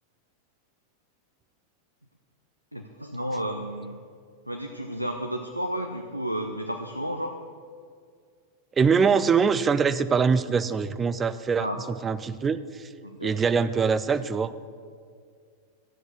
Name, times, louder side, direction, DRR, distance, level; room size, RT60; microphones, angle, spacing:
voice 1, 2.7-4.0 4.5-7.4 11.6-11.8 13.0-13.4, equal, 90° right, 4 dB, 0.6 m, -32 dB
voice 2, 8.7-12.9 13.2-14.5, right 5 dB, 20° right, 14 dB, 0.5 m, -23 dB
13.0 x 7.8 x 6.3 m, 2.1 s
figure-of-eight pair, 90°, 0 cm